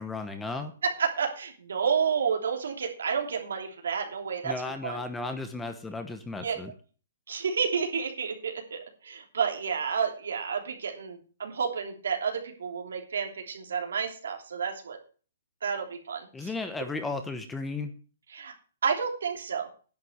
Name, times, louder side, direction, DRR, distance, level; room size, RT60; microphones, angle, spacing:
voice 1, 0.0-0.7 4.4-6.7 16.3-17.9, left 3 dB, 5° left, 8 dB, 1.0 m, -34 dB
voice 2, 0.8-4.5 4.8-5.0 6.4-6.5 7.3-15.0 15.6-16.5 18.3-18.5 18.8-19.7, right 6 dB, 85° right, 2 dB, 3.1 m, -30 dB
10.5 x 5.6 x 8.1 m, 0.39 s
hypercardioid pair, 160°, 0 cm